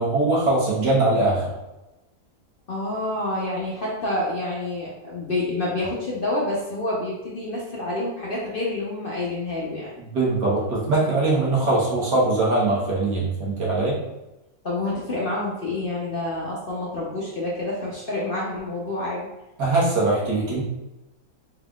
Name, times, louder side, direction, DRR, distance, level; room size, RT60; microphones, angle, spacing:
voice 1, 0.0-1.5 10.0-14.0 19.6-20.6, right 2 dB, 85° right, -5 dB, 1.9 m, -21 dB
voice 2, 2.7-9.9 14.6-19.3, left 2 dB, 50° left, -5 dB, 0.7 m, -28 dB
4.5 x 3.7 x 2.3 m, 0.98 s
omnidirectional pair, 1.8 m